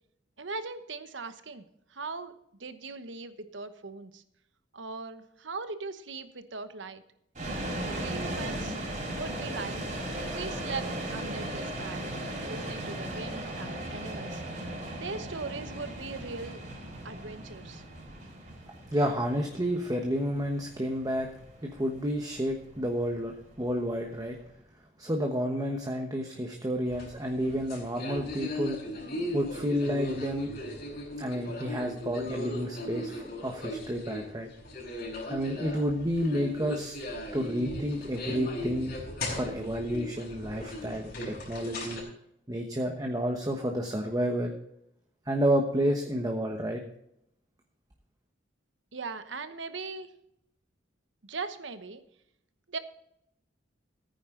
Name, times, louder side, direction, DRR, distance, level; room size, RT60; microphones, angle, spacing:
voice 1, 0.4-4.2 4.7-7.0 7.8-8.8 9.2-9.8 10.3-12.1 12.4-14.4 15.0-16.6 17.0-17.8 48.9-50.2 51.2-52.0 52.7-52.8, right 4 dB, 75° right, 11 dB, 1.1 m, -39 dB
sound 1, 7.3-24.3, right 1 dB, 45° right, 4.9 m, -37 dB
voice 2, 18.9-21.3 21.6-24.4 25.0-28.8 29.3-30.5 31.2-34.5 35.3-37.0 37.3-38.9 39.3-42.0 42.5-44.5 45.3-46.8, equal, 20° right, 3 dB, 1.2 m, -30 dB
sound 2, 26.9-42.0, left 1 dB, 55° left, 4.8 m, -38 dB
15.0 x 9.4 x 3.8 m, 0.76 s
head